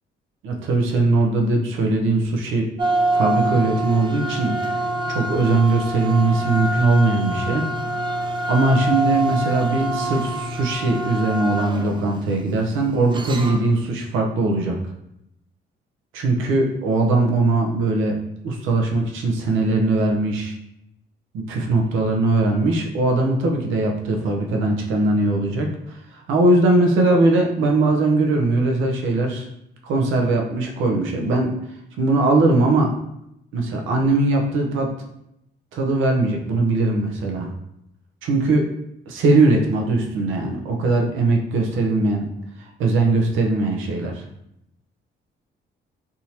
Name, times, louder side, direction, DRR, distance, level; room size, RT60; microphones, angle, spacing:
voice 1, 0.4-2.7 3.1-4.6 5.1-7.6 8.5-14.8 16.1-18.2 18.4-20.5 21.3-29.5 29.8-31.5 32.0-32.9 33.5-34.9 35.7-37.5 38.2-38.6 39.1-42.3 42.8-44.2, right 2 dB, 85° right, 1 dB, 0.7 m, -20 dB
sound 1, 2.8-13.8, right 1 dB, 25° right, 0.4 m, -26 dB
3.5 x 2.9 x 2.8 m, 0.81 s
cardioid pair, 90°, 20 cm